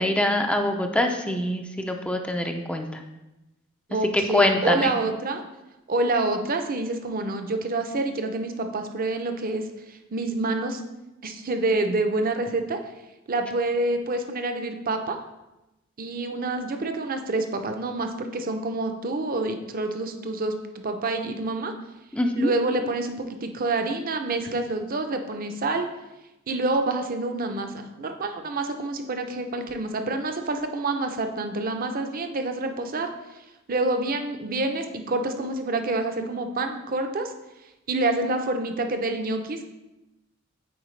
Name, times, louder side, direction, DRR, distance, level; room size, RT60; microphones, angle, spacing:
voice 1, 0.0-2.9 4.1-4.9 22.1-22.5, left 1 dB, 5° left, 4 dB, 0.4 m, -24 dB
voice 2, 3.9-5.4 5.9-10.8 11.2-12.8 13.3-15.2 16.0-21.7 22.4-25.9 26.5-33.1 33.7-37.3 37.9-39.7, right 2 dB, 45° right, 6 dB, 0.6 m, -27 dB
8.7 x 4.4 x 3.2 m, 0.98 s
head